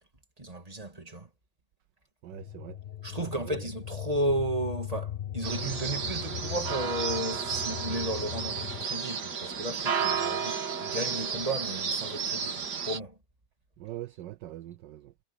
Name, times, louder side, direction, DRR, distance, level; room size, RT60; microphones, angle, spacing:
voice 1, 0.4-1.3 3.0-13.2, right 1 dB, 20° right, 2.4 m, -34 dB
voice 2, 2.2-2.8 3.1-3.6 13.8-15.1, right 14 dB, 75° right, 1.2 m, -42 dB
sound 1, 2.3-8.9, left 11 dB, 85° left, 0.5 m, -39 dB
sound 2, 5.4-13.0, right 6 dB, 60° right, 2.3 m, -32 dB
omnidirectional pair, 2.1 m